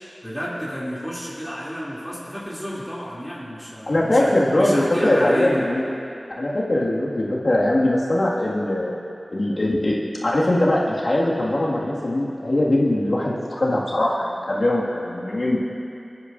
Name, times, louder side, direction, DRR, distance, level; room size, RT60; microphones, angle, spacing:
voice 1, 0.0-5.7, equal, ahead, -8 dB, 3.1 m, -31 dB
voice 2, 3.9-5.9 6.4-8.9 9.3-10.0 10.2-15.6, left 1 dB, 65° left, -5 dB, 2.2 m, -21 dB
23.5 x 9.9 x 2.7 m, 2.6 s
wide cardioid pair, 45°, 0 cm